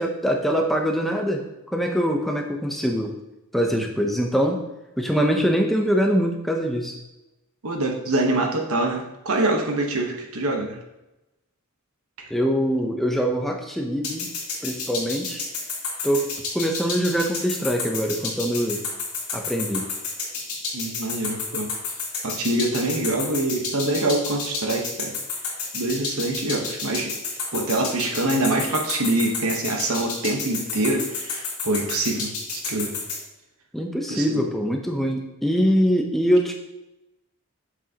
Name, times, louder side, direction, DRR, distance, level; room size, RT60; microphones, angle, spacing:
voice 1, 0.0-1.4 1.7-3.2 3.5-4.7 5.0-7.0 12.3-14.3 14.6-15.4 16.0-18.8 19.3-19.9 33.7-36.5, equal, ahead, 2 dB, 0.7 m, -23 dB
voice 2, 7.6-10.8 20.7-21.7 22.2-25.1 25.7-27.1 27.5-32.9 34.1-34.4, right 2 dB, 75° right, 2 dB, 1.1 m, -25 dB
sound 1, 14.0-33.2, left 4 dB, 85° left, 2.2 m, -30 dB
7.3 x 6.1 x 2.9 m, 0.96 s
head